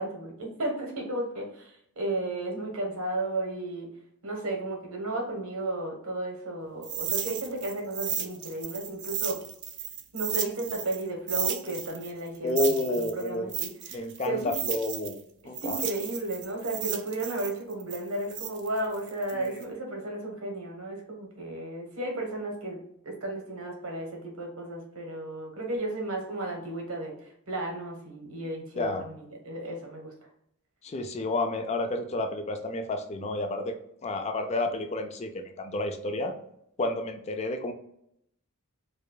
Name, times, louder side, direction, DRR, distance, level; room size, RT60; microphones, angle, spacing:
voice 1, 0.0-3.9 4.2-9.4 10.1-14.5 15.6-22.8 23.0-30.1, right 2 dB, 80° right, 1 dB, 1.1 m, -34 dB
sound 1, 6.8-11.0 11.3-15.2 15.5-19.6, right 9 dB, 55° right, 0.4 m, -34 dB
voice 2, 12.4-13.5 13.9-15.2 15.5-15.8 19.3-19.5 28.8-29.1 30.8-33.8 34.0-36.4 36.8-37.7, left 2 dB, 30° left, 6 dB, 0.4 m, -30 dB
4.8 x 2.2 x 2.3 m, 0.74 s
head